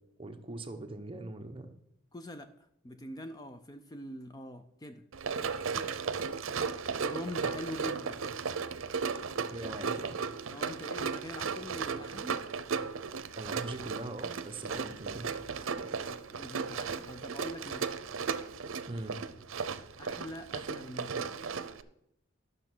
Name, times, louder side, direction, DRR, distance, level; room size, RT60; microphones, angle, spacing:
voice 1, 0.2-1.7 5.5-5.9 9.5-10.1 13.4-16.0 18.9-19.2 20.6-20.7, right 2 dB, 25° right, 6 dB, 0.9 m, -42 dB
voice 2, 2.1-2.5 2.8-5.0 7.0-8.2 10.5-12.4 16.3-17.9 20.0-21.4, left 1 dB, 20° left, 9 dB, 0.5 m, -43 dB
Run, 5.1-21.8, right 5 dB, 90° right, 0.6 m, -36 dB
11.5 x 6.3 x 6.1 m, 0.78 s
head